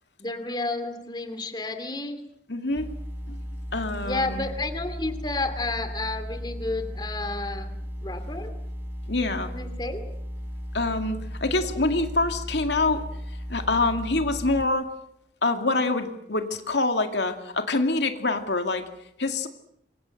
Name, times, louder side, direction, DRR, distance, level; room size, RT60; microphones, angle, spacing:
voice 1, 0.2-2.2 4.0-7.7 8.0-8.5 9.4-10.1, left 2 dB, 25° left, 9 dB, 2.6 m, -31 dB
voice 2, 2.5-2.9 3.3-3.4 3.7-4.4 9.1-9.5 10.7-14.9 15.4-18.9 19.2-19.5, left 2 dB, 75° left, 6 dB, 2.3 m, -26 dB
sound 1, 2.8-14.6, equal, 10° right, 4.1 m, -36 dB
28.0 x 24.0 x 6.5 m, 0.76 s
head